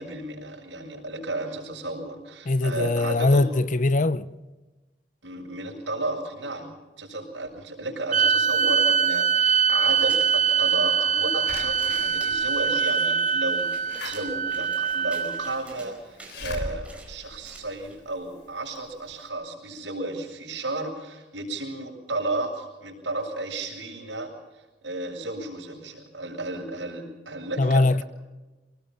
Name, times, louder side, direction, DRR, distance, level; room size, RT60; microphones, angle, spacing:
voice 1, 0.0-3.4 5.2-24.3 24.8-28.0, right 2 dB, 85° right, 7.3 m, -33 dB
voice 2, 2.5-4.3 27.6-28.0, left 2 dB, 45° left, 0.7 m, -21 dB
sound 1, 8.1-15.6, right 6 dB, 45° right, 0.6 m, -23 dB
sound 2, 9.8-18.0, right 2 dB, 5° right, 5.1 m, -49 dB
Slam / Alarm, 11.5-18.3 18.7-18.8 19.1-19.2, left 2 dB, 65° left, 3.5 m, -40 dB
25.5 x 20.0 x 5.9 m
head